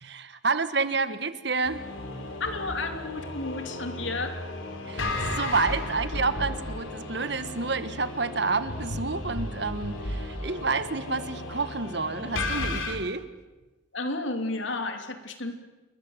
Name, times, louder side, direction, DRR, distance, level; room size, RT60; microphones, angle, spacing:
voice 1, 0.0-1.8 4.9-13.2, right 4 dB, 55° right, 12 dB, 1.5 m, -29 dB
sound 1, 1.6-13.0, left 2 dB, 85° left, 4.0 m, -34 dB
voice 2, 2.4-4.4 13.9-15.5, left 2 dB, 70° left, 7 dB, 3.0 m, -32 dB
28.5 x 22.5 x 7.9 m, 1.2 s
head